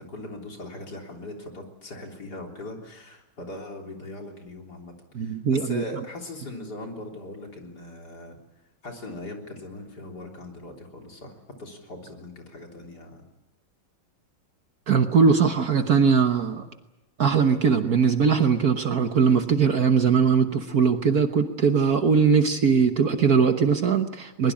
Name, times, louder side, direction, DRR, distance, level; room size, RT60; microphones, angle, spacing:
voice 1, 0.1-8.4 8.8-11.3 11.6-13.2, left 1 dB, 55° left, 1 dB, 4.1 m, -40 dB
voice 2, 5.1-5.8 14.9-16.7 17.2-24.5, right 6 dB, 55° right, 7 dB, 1.5 m, -20 dB
22.5 x 21.5 x 8.6 m, 1.0 s
omnidirectional pair, 2.2 m